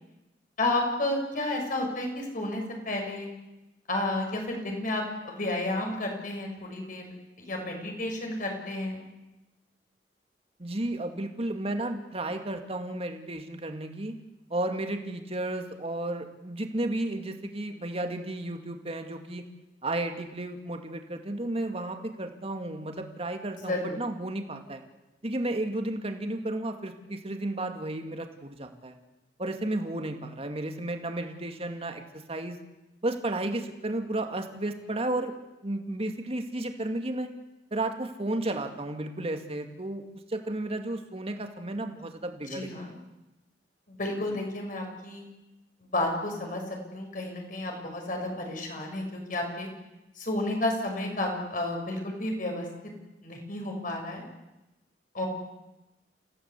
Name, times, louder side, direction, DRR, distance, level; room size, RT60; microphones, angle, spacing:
voice 1, 0.6-3.3 3.9-7.1 7.4-9.0 23.6-24.0 42.5-43.0 43.9-45.2 45.8-49.7 50.2-52.7 53.2-54.2 55.1-55.3, left 2 dB, 50° left, 2 dB, 6.5 m, -31 dB
voice 2, 10.6-14.1 14.5-19.4 19.8-24.8 25.2-29.0 29.4-32.6 33.0-35.3 35.6-37.3 37.7-40.0 40.3-42.9 44.3-44.4, right 1 dB, 35° right, 5 dB, 2.4 m, -33 dB
29.5 x 16.5 x 8.5 m, 1.0 s
head